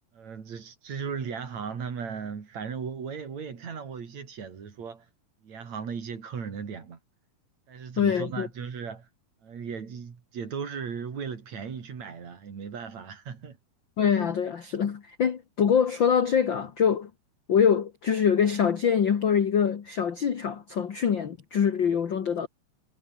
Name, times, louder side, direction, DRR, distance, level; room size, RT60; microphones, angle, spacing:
voice 1, 0.1-5.1 5.4-7.0 7.7-9.1 9.4-13.6, right 6 dB, 50° right, 4.1 m, -37 dB
voice 2, 8.0-8.5 14.0-17.1 17.5-22.5, left 7 dB, 45° left, 1.6 m, -24 dB
omnidirectional pair, 4.4 m